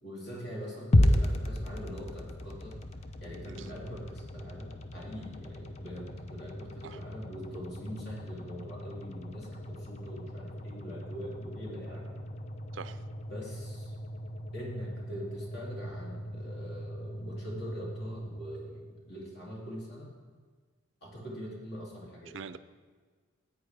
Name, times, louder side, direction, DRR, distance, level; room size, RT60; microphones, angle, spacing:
voice 1, 0.0-2.8 3.2-12.1 13.3-13.9 14.5-20.1 21.0-22.4, equal, 50° left, -4 dB, 2.8 m, -43 dB
sound 1, 0.9-19.1, left 1 dB, 30° left, 0.5 m, -35 dB
voice 2, 3.5-3.7 6.8-7.0 12.7-13.0 22.3-22.6, right 5 dB, 65° right, 13 dB, 0.5 m, -43 dB
14.0 x 8.9 x 3.4 m, 1.5 s
head